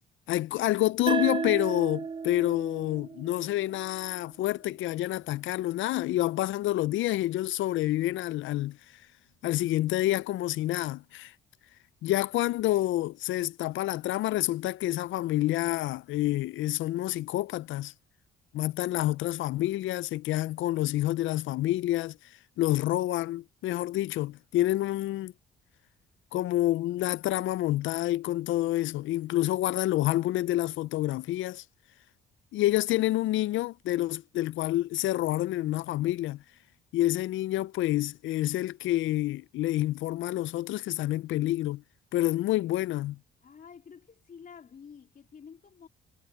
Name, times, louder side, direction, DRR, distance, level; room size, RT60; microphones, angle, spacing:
voice 1, 0.3-8.8 9.4-11.3 12.0-17.9 18.5-22.2 22.6-25.3 26.3-31.6 32.5-36.4 36.9-41.8 42.1-43.2, left 15 dB, 75° left, 0.4 m, -28 dB
sound 1, 1.1-4.3, right 5 dB, 25° right, 0.6 m, -34 dB
voice 2, 43.4-45.9, left 6 dB, 45° left, 3.6 m, -49 dB
cardioid pair, 90°, 20 cm